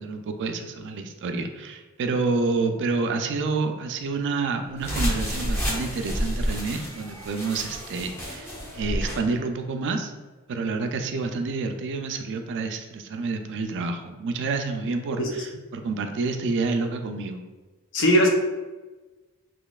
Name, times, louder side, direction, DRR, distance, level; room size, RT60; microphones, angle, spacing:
voice 1, 0.0-10.1 10.5-17.4, right 3 dB, 55° right, 6 dB, 0.4 m, -28 dB
sound 1, 4.8-9.2, equal, 10° left, 0.8 m, -29 dB
voice 2, 17.9-18.3, equal, 60° left, 2 dB, 0.6 m, -20 dB
3.9 x 3.0 x 2.3 m, 1.2 s
head